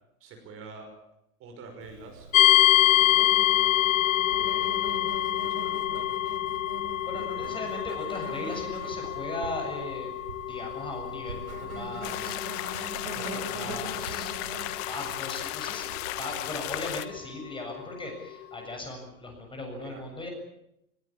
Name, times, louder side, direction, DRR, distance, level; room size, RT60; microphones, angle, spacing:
voice 1, 0.2-0.9 1.4-3.8 4.3-6.2 13.3-13.5 19.8-20.0, right 3 dB, 30° right, 3 dB, 5.9 m, -47 dB
Insect, 1.8-17.0, right 4 dB, 70° right, 4.6 m, -42 dB
sound 1, 2.3-17.2, left 14 dB, 60° left, 1.6 m, -27 dB
voice 2, 7.0-10.1 10.4-12.4 13.0-14.3 14.7-20.3, left 2 dB, 10° left, 2 dB, 7.3 m, -38 dB
sound 2, 12.0-17.1, left 18 dB, 30° left, 1.3 m, -35 dB
22.0 x 21.0 x 8.6 m, 0.80 s
figure-of-eight pair, 105°, 45 cm